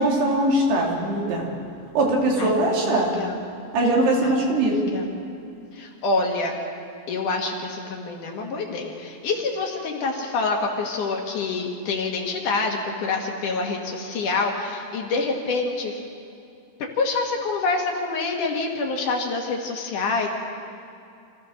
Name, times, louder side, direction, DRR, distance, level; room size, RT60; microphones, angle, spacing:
voice 1, 0.0-1.5 1.9-3.1 3.7-4.9, right 1 dB, 85° right, -2 dB, 5.0 m, -21 dB
voice 2, 2.4-3.4 4.2-4.3 4.7-5.1 5.7-6.6 7.1-16.0 16.9-20.3, left 3 dB, 60° left, 1 dB, 2.8 m, -26 dB
26.0 x 15.5 x 6.4 m, 2.5 s
omnidirectional pair, 4.6 m